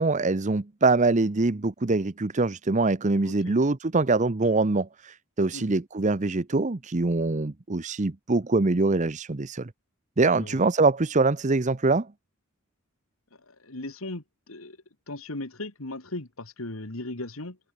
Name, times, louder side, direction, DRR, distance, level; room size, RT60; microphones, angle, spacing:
voice 1, 0.0-9.7 10.2-12.1, right 3 dB, 35° right, 0.8 m, -24 dB
voice 2, 3.2-3.6 5.5-5.8 10.4-10.6 13.5-14.8 15.1-17.6, left 2 dB, 75° left, 2.5 m, -37 dB
head